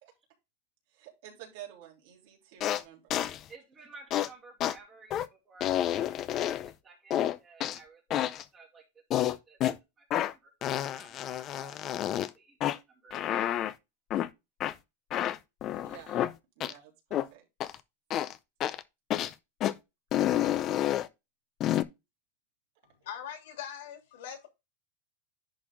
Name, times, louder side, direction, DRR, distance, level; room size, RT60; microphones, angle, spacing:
voice 1, 0.9-3.0 15.7-16.3 16.6-17.5, right 11 dB, 55° right, 3.1 m, -50 dB
sound 1, 2.6-2.8 3.1-3.4 4.1-4.3 4.6-4.7 5.1-5.3 5.6-6.7 7.1-7.8 8.1-8.4 9.1-9.7 10.1-10.3 10.6-12.3 12.6-12.8 13.1-13.7 14.1-14.3 14.6-14.7 15.1-16.3 16.6-16.7 17.1-17.3 17.6-17.7 18.1-18.3 18.6-18.8 19.1-19.3 19.6-19.7 20.1-21.1 21.6-21.8, left 12 dB, 25° left, 0.4 m, -29 dB
voice 2, 3.5-8.8 9.2-9.6 10.0-11.8 12.0-13.6, right 4 dB, 15° right, 2.3 m, -54 dB
voice 3, 22.8-24.5, left 9 dB, 70° left, 2.8 m, -42 dB
10.5 x 4.1 x 3.6 m
supercardioid pair, 170°, 0 cm